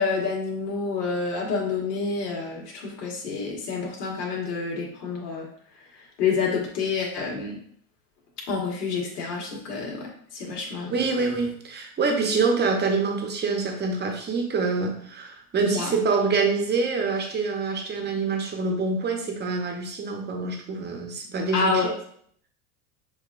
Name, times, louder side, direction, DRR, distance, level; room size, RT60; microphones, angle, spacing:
voice 1, 0.0-5.5 6.2-7.6 8.5-11.0 15.6-15.9 21.5-21.9, left 4 dB, 75° left, -1 dB, 1.8 m, -28 dB
voice 2, 10.9-21.9, right 4 dB, 20° right, 3 dB, 0.9 m, -26 dB
6.8 x 2.6 x 2.5 m, 0.62 s
supercardioid pair, 110°, 47 cm